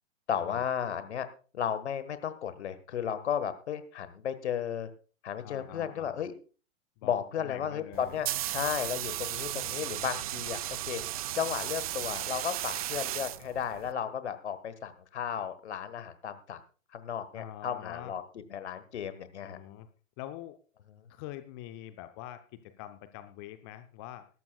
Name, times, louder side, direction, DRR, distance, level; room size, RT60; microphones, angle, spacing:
voice 1, 0.3-1.3 1.5-4.9 5.2-6.3 7.0-11.0 11.3-16.6 16.9-18.2 18.5-19.6, left 8 dB, 55° left, 12 dB, 1.5 m, -34 dB
voice 2, 5.4-6.3 7.0-8.2 17.3-18.1 19.4-19.9 20.2-20.6 21.1-24.3, left 13 dB, 20° left, 10 dB, 0.5 m, -45 dB
sound 1, 7.9-13.9, right 14 dB, 30° right, 0.5 m, -35 dB
20.0 x 12.0 x 2.3 m, 0.37 s
figure-of-eight pair, 110°, 39 cm